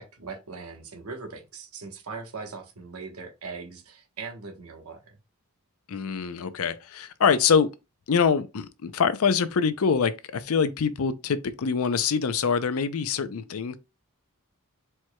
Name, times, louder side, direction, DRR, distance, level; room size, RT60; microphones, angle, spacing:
voice 1, 0.0-5.2, right 4 dB, 80° right, 1.1 m, -40 dB
voice 2, 5.9-7.7 8.1-13.8, left 6 dB, 70° left, 0.5 m, -24 dB
4.6 x 4.4 x 2.2 m
head